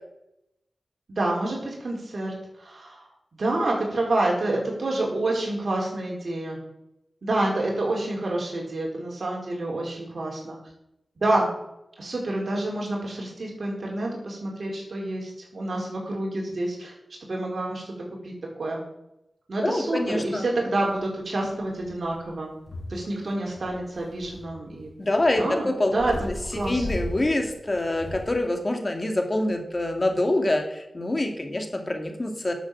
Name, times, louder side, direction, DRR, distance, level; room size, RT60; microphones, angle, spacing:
voice 1, 1.1-2.3 2.6-3.0 3.4-6.6 7.2-10.6 11.2-11.5 12.0-16.9 17.2-17.8 18.2-18.3 18.6-18.8 19.5-22.5 22.9-24.9 25.4-26.1 26.6-26.9, right 2 dB, 65° right, -1 dB, 4.6 m, -28 dB
voice 2, 19.6-20.5 25.0-26.0 26.3-32.5, left 1 dB, 35° left, 4 dB, 2.4 m, -26 dB
sound 1, 21.0-21.1 21.6-23.0 23.2-25.5 25.9-28.3, left 1 dB, 70° left, 4.9 m, -37 dB
11.5 x 7.2 x 7.5 m, 0.85 s
cardioid pair, 55°, 0 cm